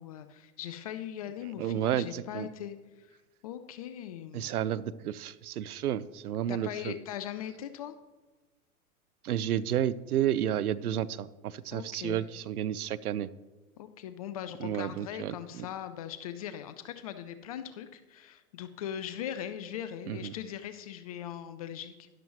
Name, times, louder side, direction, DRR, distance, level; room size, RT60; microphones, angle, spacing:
voice 1, 0.0-3.1 3.4-4.5 6.5-8.0 11.7-12.2 13.8-22.1, left 10 dB, 25° left, 11 dB, 0.3 m, -40 dB
voice 2, 1.6-2.5 4.3-7.0 9.2-13.3 14.6-15.7 20.1-20.3, right 10 dB, 75° right, 18 dB, 0.7 m, -31 dB
12.5 x 11.0 x 3.1 m, 1.2 s
hypercardioid pair, 115°, 45 cm